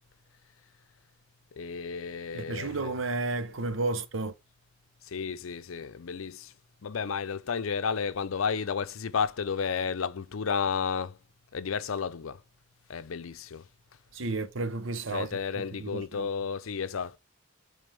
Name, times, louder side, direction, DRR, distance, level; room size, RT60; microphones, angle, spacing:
voice 1, 1.6-3.0 5.1-6.5 6.8-11.2 11.5-12.4 12.9-13.6 15.1-17.2, left 6 dB, 90° left, 0.5 m, -32 dB
voice 2, 2.3-4.3 14.1-15.3 15.8-16.3, right 3 dB, 70° right, 0.9 m, -32 dB
8.9 x 3.5 x 3.3 m
head